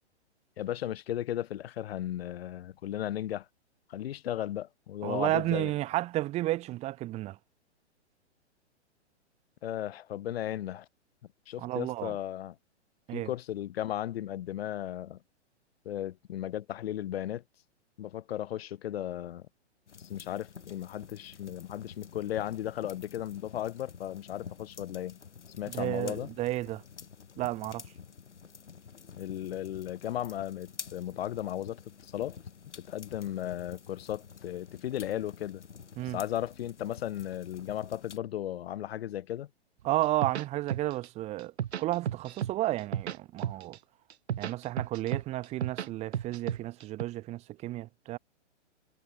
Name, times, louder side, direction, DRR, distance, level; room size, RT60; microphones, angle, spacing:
voice 1, 0.6-3.5 3.9-5.7 9.6-10.9 11.5-12.6 13.1-15.2 15.8-17.4 18.0-19.5 20.1-25.2 25.6-26.3 29.2-32.4 32.8-35.6 36.0-39.5, left 12 dB, 60° left, 0.9 m, -35 dB
voice 2, 5.0-7.4 11.6-12.1 13.1-13.3 25.7-26.8 27.4-27.8 36.0-36.2 39.8-41.5 41.8-43.8 44.4-48.2, right 16 dB, 20° right, 0.7 m, -32 dB
sound 1, 19.9-38.2, left 6 dB, 80° left, 3.1 m, -49 dB
sound 2, 40.0-41.1 41.4-42.5 42.8-43.8 44.1-45.9 46.1-47.0, right 10 dB, 65° right, 1.4 m, -33 dB
hypercardioid pair, 125°, 35 cm